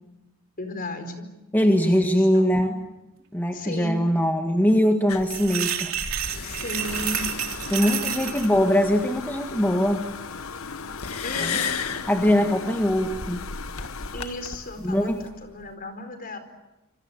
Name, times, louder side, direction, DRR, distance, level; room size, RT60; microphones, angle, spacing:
voice 1, 0.6-1.2 1.9-2.8 3.5-4.1 6.4-7.3 7.8-8.3 11.2-11.9 14.1-16.4, left 1 dB, 45° left, 8 dB, 4.7 m, -35 dB
voice 2, 1.5-2.7 3.3-5.9 7.7-10.0 11.4-11.6 12.1-13.4 14.8-15.2, equal, 10° left, 3 dB, 1.8 m, -22 dB
sound 1, 5.1-15.3, left 6 dB, 85° left, 1.7 m, -36 dB
sound 2, 5.2-8.5, right 10 dB, 70° right, 3.2 m, -30 dB
sound 3, 6.8-15.7, left 5 dB, 70° left, 1.1 m, -39 dB
27.5 x 25.0 x 8.1 m, 1.0 s
head